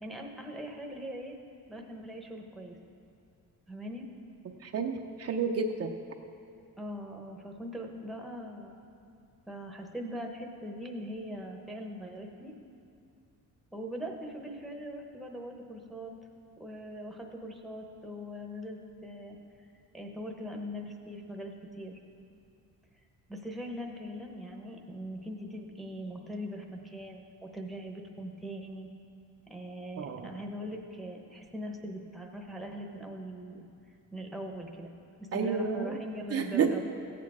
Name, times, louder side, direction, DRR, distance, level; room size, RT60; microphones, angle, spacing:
voice 1, 0.0-1.3 1.7-2.8 3.7-4.0 6.8-8.9 9.5-12.5 13.7-16.1 16.6-19.7 19.9-22.0 23.3-28.9 29.5-33.7 34.1-34.9 35.3-36.8, equal, ahead, 1 dB, 0.8 m, -41 dB
voice 2, 4.6-5.9 30.0-30.4 35.3-36.0 36.3-36.7, right 5 dB, 45° right, 4 dB, 0.6 m, -30 dB
15.5 x 8.5 x 4.8 m, 2.5 s
cardioid pair, 165°, 34 cm